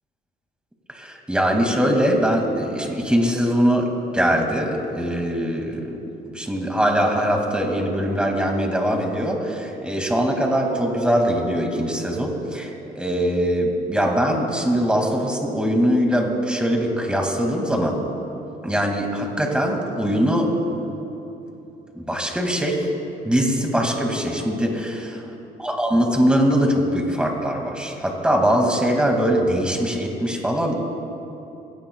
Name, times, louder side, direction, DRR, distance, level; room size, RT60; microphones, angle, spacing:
voice 1, 0.9-6.0 6.3-18.0 18.6-20.5 22.1-22.9 23.2-25.0 25.6-30.7, equal, 5° right, 2 dB, 2.2 m, -22 dB
22.5 x 16.5 x 2.3 m, 2.9 s
cardioid pair, 110°, 17 cm